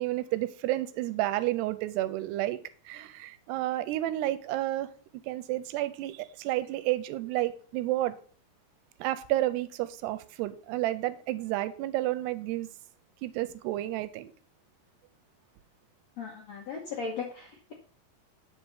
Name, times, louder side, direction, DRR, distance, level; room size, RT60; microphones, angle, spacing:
voice 1, 0.0-2.6 2.9-4.9 5.2-8.2 9.0-12.7 13.2-14.3, right 15 dB, 85° right, 2.7 m, -31 dB
voice 2, 16.2-17.7, left 5 dB, 70° left, 1.6 m, -37 dB
9.0 x 5.2 x 5.6 m
omnidirectional pair, 4.8 m